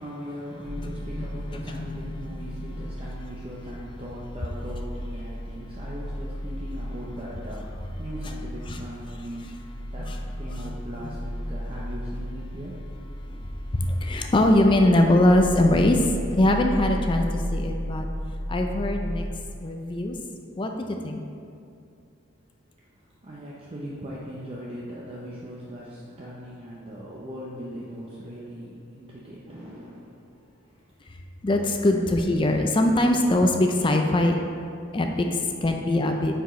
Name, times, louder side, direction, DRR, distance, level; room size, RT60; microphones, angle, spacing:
voice 1, 0.0-7.7 8.0-9.5 9.9-10.1 10.4-12.7 13.2-13.5 23.2-30.8, equal, 25° right, -6 dB, 0.6 m, -39 dB
sound 1, 0.6-19.3, equal, ahead, 1.3 m, -34 dB
voice 2, 1.2-2.9 8.7-8.8 10.0-10.2 10.6-10.8 11.0-11.1 11.5-11.6 13.7-18.1 18.5-19.2 19.6-20.2 20.5-21.2 31.4-34.4 34.9-36.4, left 1 dB, 25° left, 3 dB, 0.4 m, -22 dB
9.1 x 4.6 x 3.1 m, 2.4 s
head